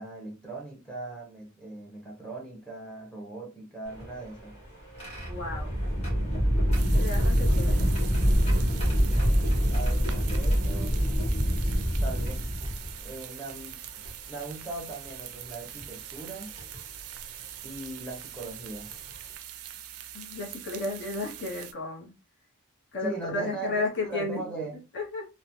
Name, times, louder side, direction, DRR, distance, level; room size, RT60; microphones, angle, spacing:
voice 1, 0.0-4.5 8.9-9.3 9.7-10.9 12.0-12.7 13.0-13.8 14.3-16.6 17.6-18.9 23.0-24.8, right 3 dB, 5° left, 0.8 m, -39 dB
sound 1, 3.8-13.1 14.0-14.1 15.6-15.8 16.6-16.8 18.4-18.5 18.9-19.1, equal, 30° left, 1.4 m, -25 dB
voice 2, 5.3-5.7 6.9-7.9 20.1-22.1 22.9-24.4 24.9-25.3, left 3 dB, 50° left, 0.8 m, -33 dB
sound 2, 6.7-21.7, right 11 dB, 65° right, 0.4 m, -43 dB
3.1 x 2.0 x 2.6 m
head